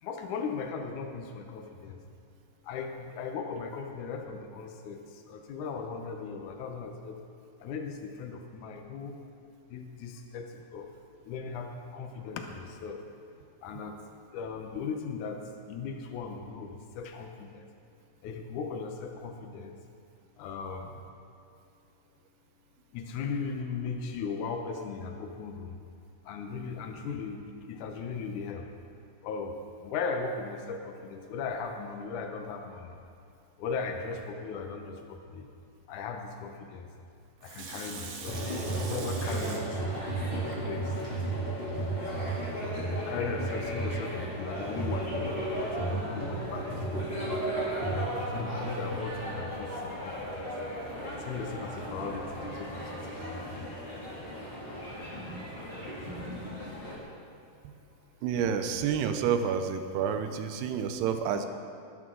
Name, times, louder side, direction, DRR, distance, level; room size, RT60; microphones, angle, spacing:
voice 1, 0.0-2.0 2.6-7.2 7.6-9.2 9.7-10.9 11.2-13.0 13.6-14.0 14.3-17.7 18.2-19.8 20.4-21.0 22.9-25.8 26.2-28.7 29.2-33.0 33.6-35.5 35.9-36.9 37.4-38.4 38.8-40.0 40.3-41.0 43.1-47.3 48.2-50.6 51.2-53.8, left 5 dB, 85° left, 4 dB, 1.7 m, -38 dB
Water tap faucet / Sink (filling or washing), 37.4-41.2 41.7-41.8, right 4 dB, 60° right, 2.7 m, -44 dB
sound 1, 38.3-57.0, right 1 dB, 15° left, 2.3 m, -34 dB
voice 2, 58.2-61.5, right 7 dB, 80° right, 8 dB, 2.7 m, -29 dB
20.0 x 12.5 x 3.8 m, 2.4 s
omnidirectional pair, 4.8 m